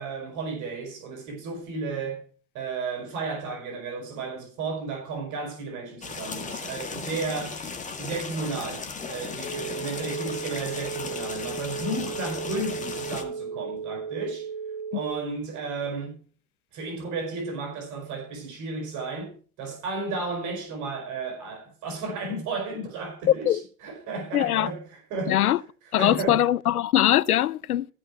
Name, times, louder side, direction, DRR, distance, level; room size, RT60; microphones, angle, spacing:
voice 1, 0.0-2.2 2.5-7.6 8.0-14.5 14.9-16.2 16.7-25.5 25.8-26.4, right 3 dB, 45° right, 4.9 m, -33 dB
sound 1, 6.0-13.2, left 4 dB, 15° left, 1.8 m, -36 dB
sound 2, 9.4-15.1, right 6 dB, 35° left, 2.3 m, -35 dB
voice 2, 24.3-24.7 25.3-25.6 25.9-27.9, left 12 dB, 85° left, 0.5 m, -22 dB
14.5 x 5.9 x 4.7 m
hypercardioid pair, 90°, 43 cm